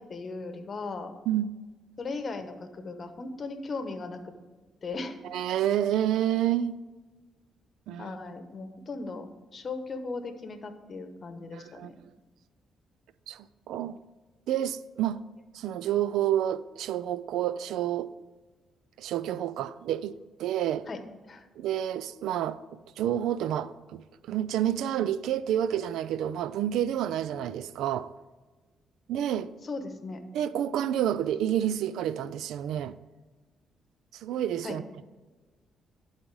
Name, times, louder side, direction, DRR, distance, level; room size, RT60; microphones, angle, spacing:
voice 1, 0.0-1.1 2.0-4.3 4.8-5.2 8.0-9.3 9.5-12.0 20.9-21.0 21.2-21.5 29.6-30.2 34.6-34.8, left 3 dB, 40° left, 1.0 m, -37 dB
voice 2, 5.3-6.8 7.9-8.1 11.5-11.9 13.3-14.0 14.5-15.2 15.5-18.1 19.0-20.9 21.6-22.6 23.0-24.0 24.3-28.1 29.1-29.5 30.3-32.9 34.1-34.8, right 11 dB, 85° right, 0.3 m, -29 dB
11.0 x 4.1 x 4.7 m
cardioid pair, 90°, 0 cm